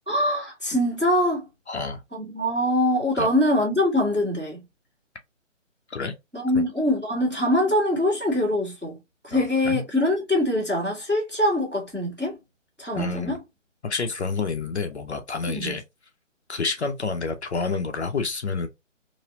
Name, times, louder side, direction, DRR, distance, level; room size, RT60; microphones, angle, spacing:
voice 1, 0.1-1.5 2.1-4.6 6.3-9.0 9.2-12.4 12.8-13.4 15.5-15.7, left 1 dB, 5° right, 1.1 m, -23 dB
voice 2, 1.7-2.0 3.1-3.3 5.9-6.1 6.5-6.6 9.3-9.8 12.9-13.4 13.8-15.8 16.5-18.7, left 4 dB, 60° left, 0.6 m, -29 dB
3.1 x 2.5 x 2.5 m
hypercardioid pair, 175°, 39 cm